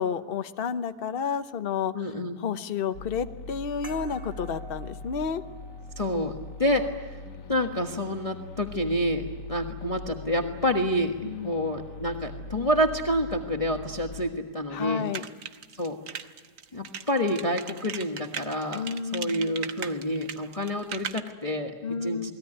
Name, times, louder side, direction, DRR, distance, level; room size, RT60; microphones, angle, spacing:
voice 1, 0.0-2.1 2.4-5.4 11.2-11.5 14.7-15.2 18.7-19.5 21.8-22.3, left 6 dB, 40° left, 9 dB, 1.0 m, -31 dB
voice 2, 1.9-2.4 6.0-7.2 7.5-11.2 11.4-15.1 15.7-16.2 16.7-21.7 22.0-22.3, equal, 20° left, 3 dB, 1.3 m, -28 dB
sound 1, 2.9-14.3, left 3 dB, 85° left, 2.0 m, -41 dB
sound 2, 3.8-8.9, right 1 dB, 40° right, 3.9 m, -52 dB
sound 3, 15.1-21.2, right 7 dB, 85° right, 1.8 m, -37 dB
28.5 x 20.5 x 9.9 m, 1.3 s
omnidirectional pair, 1.8 m